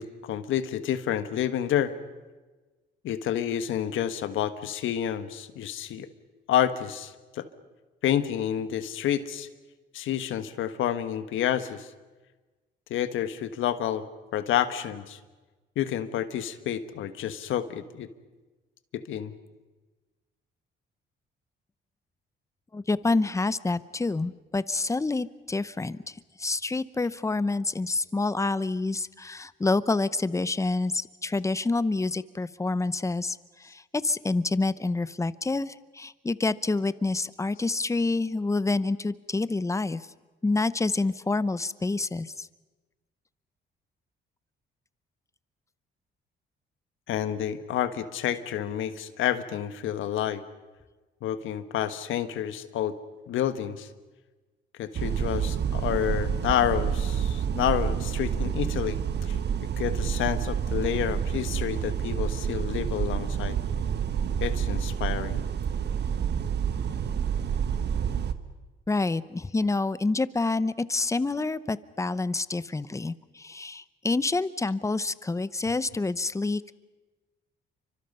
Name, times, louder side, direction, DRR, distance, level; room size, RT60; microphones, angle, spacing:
voice 1, 0.0-1.9 3.0-6.1 6.5-7.5 8.0-9.5 9.9-11.9 12.9-14.0 14.3-15.2 15.7-18.1 18.9-19.3 47.1-50.4 51.2-53.0 53.3-53.9 54.8-59.4 59.8-63.6 64.4-65.4, left 10 dB, 80° left, 11 dB, 1.4 m, -29 dB
voice 2, 22.7-40.1 40.4-42.5 68.9-76.7, left 3 dB, 15° left, 17 dB, 0.8 m, -28 dB
sound 1, 54.9-68.3, right 8 dB, 60° right, 1.3 m, -28 dB
29.0 x 25.0 x 5.5 m, 1.2 s
cardioid pair, 90°, 20 cm